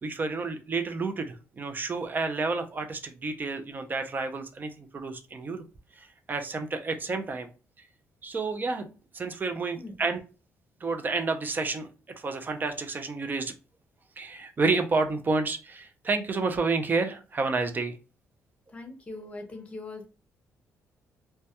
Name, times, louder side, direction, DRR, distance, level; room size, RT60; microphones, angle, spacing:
voice 1, 0.0-5.6 6.0-7.5 8.2-8.9 9.1-10.2 10.8-11.9 12.2-13.5 14.2-18.0, right 3 dB, 35° right, 6 dB, 0.5 m, -30 dB
voice 2, 18.7-20.1, left 2 dB, 20° left, 3 dB, 0.7 m, -41 dB
2.2 x 2.2 x 2.8 m, 0.34 s
cardioid pair, 90°, 6 cm